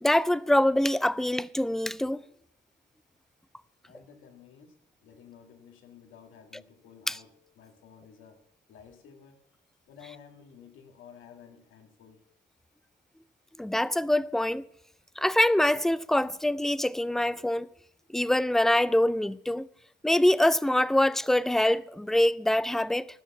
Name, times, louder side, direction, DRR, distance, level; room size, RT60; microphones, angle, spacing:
voice 1, 0.0-2.2 7.1-7.2 13.6-14.6 15.2-17.7 18.1-19.7 20.0-23.1, left 1 dB, ahead, 0.4 m, -24 dB
voice 2, 3.9-8.4 8.7-9.4 9.9-12.2, left 7 dB, 85° left, 1.9 m, -53 dB
14.5 x 6.3 x 6.9 m
cardioid pair, 90°, 20 cm